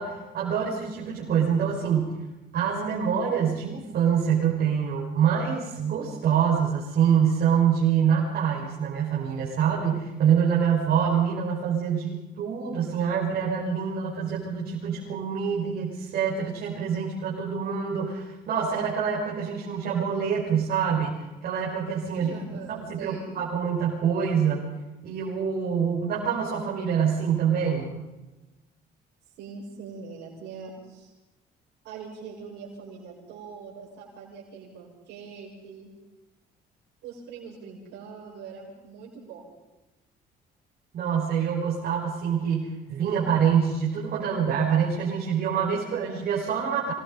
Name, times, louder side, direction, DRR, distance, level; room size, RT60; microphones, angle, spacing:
voice 1, 0.0-2.1 2.5-22.3 22.7-24.7 25.0-27.9 40.9-46.9, right 7 dB, 60° right, -5 dB, 6.0 m, -25 dB
voice 2, 22.2-23.3 29.4-31.1 31.8-35.9 37.0-39.5, right 5 dB, 85° right, -5 dB, 6.8 m, -42 dB
26.5 x 20.5 x 5.5 m, 1.1 s
cardioid pair, 110°, 17 cm